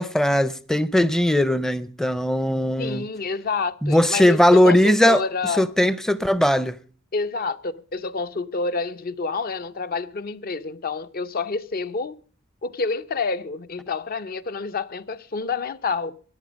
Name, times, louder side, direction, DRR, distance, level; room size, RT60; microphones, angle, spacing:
voice 1, 0.0-3.0 3.8-5.2 5.6-6.8, left 1 dB, 5° left, 0.5 m, -19 dB
voice 2, 2.8-5.7 7.1-12.1 12.6-16.2, left 4 dB, 45° left, 0.6 m, -28 dB
14.0 x 10.5 x 5.2 m
head